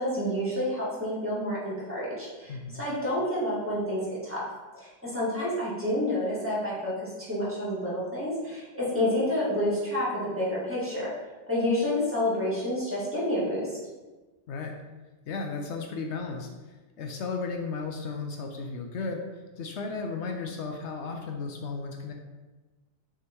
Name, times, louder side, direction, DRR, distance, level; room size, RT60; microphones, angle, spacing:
voice 1, 0.0-4.4 4.7-11.1 11.5-13.7, left 1 dB, 10° right, -8 dB, 2.1 m, -29 dB
voice 2, 2.5-2.8 14.5-14.8 15.3-19.3 19.6-22.1, left 4 dB, 75° left, 3 dB, 0.9 m, -34 dB
6.4 x 3.6 x 4.4 m, 1.2 s
omnidirectional pair, 1.2 m